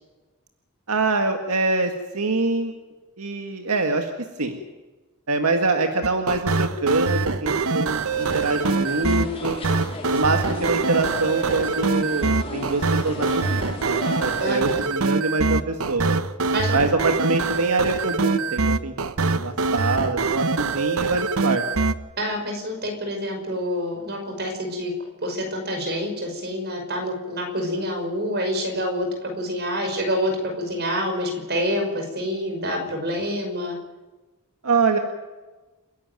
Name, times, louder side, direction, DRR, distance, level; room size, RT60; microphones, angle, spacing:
voice 1, 0.9-2.7 3.2-4.1 4.4-4.6 5.3-9.6 10.1-16.2 16.7-21.6 34.6-35.0, right 3 dB, 85° right, 5 dB, 1.8 m, -25 dB
sound 1, 6.0-21.9, right 4 dB, 70° right, 1.0 m, -24 dB
sound 2, 8.1-14.6, left 1 dB, 25° left, 3.3 m, -35 dB
voice 2, 14.4-14.9 16.5-16.8 22.2-24.9 25.2-33.8, equal, 50° right, 3 dB, 5.7 m, -27 dB
29.0 x 11.5 x 9.2 m, 1.2 s
head